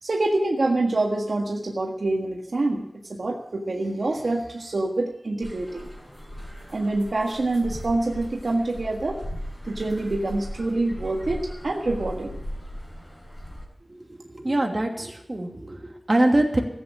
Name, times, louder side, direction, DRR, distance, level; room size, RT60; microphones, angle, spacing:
voice 1, 0.0-5.9 6.7-9.2 9.6-12.4, right 2 dB, 75° right, 0 dB, 1.6 m, -26 dB
sound 1, 5.4-13.7, equal, 15° left, 5.5 m, -38 dB
voice 2, 13.9-16.6, right 1 dB, 35° right, 1 dB, 2.7 m, -24 dB
15.0 x 8.6 x 8.7 m, 0.83 s
wide cardioid pair, 75°, 0 cm